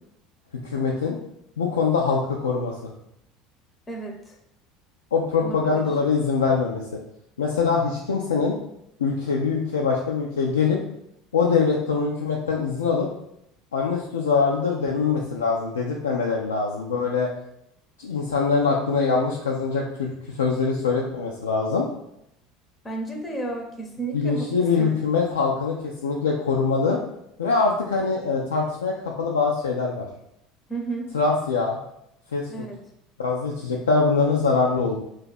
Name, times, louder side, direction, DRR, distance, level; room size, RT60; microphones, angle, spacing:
voice 1, 0.6-1.2 1.6-2.9 5.1-6.8 7.4-8.5 9.0-10.8 11.3-13.1 13.7-17.3 18.0-21.9 24.1-27.0 27.4-30.1 31.1-31.8 32.3-32.5 33.2-35.0, left 4 dB, 75° left, -2 dB, 0.3 m, -23 dB
voice 2, 3.9-4.3 5.4-5.9 22.8-24.5 24.8-25.0 30.7-31.1 32.5-32.8, right 3 dB, 20° left, 1 dB, 0.6 m, -32 dB
2.6 x 2.3 x 3.9 m, 0.77 s
figure-of-eight pair, 70°, 0 cm